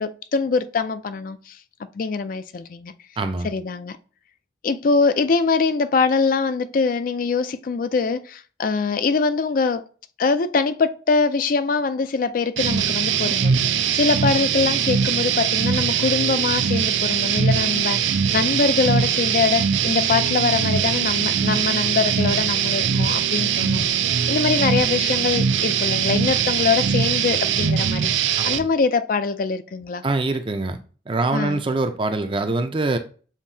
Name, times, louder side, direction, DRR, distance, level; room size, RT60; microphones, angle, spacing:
voice 1, 0.0-1.6 1.9-2.9 3.4-4.0 4.6-9.8 10.2-30.0 31.3-31.6, left 4 dB, 50° left, 0.4 m, -23 dB
voice 2, 3.2-3.5 28.4-28.6 30.0-30.8 31.1-33.0, right 3 dB, 30° right, 0.5 m, -24 dB
sound 1, 12.6-28.6, right 7 dB, 90° right, 0.4 m, -21 dB
7.2 x 2.7 x 2.7 m
head